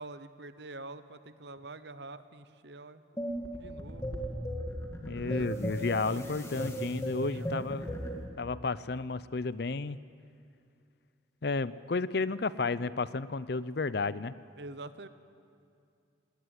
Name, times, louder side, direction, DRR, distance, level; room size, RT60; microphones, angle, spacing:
voice 1, 0.0-3.0 3.5-4.2 5.1-6.4 7.1-7.6 7.8-7.9 14.6-15.1, right 2 dB, 60° right, 12 dB, 0.9 m, -46 dB
sound 1, 3.2-8.3, equal, 15° left, 2.1 m, -36 dB
voice 2, 5.0-7.9 8.4-10.0 11.4-14.4, left 3 dB, 55° left, 16 dB, 0.6 m, -32 dB
19.5 x 18.5 x 9.6 m, 2.5 s
head